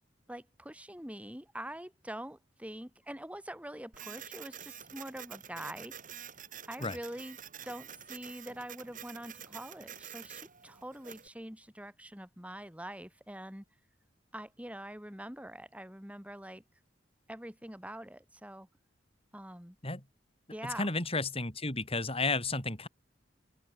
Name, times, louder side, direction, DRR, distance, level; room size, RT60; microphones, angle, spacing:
voice 1, 0.3-6.0 6.7-7.4 7.6-13.6 14.3-16.6 17.3-18.7 19.3-19.8 20.5-20.9, right 1 dB, 5° right, 5.4 m, -44 dB
Printer, 3.9-11.3, right 9 dB, 45° right, 5.2 m, -48 dB
voice 2, 20.8-22.9, left 3 dB, 30° left, 6.8 m, -32 dB
open air
head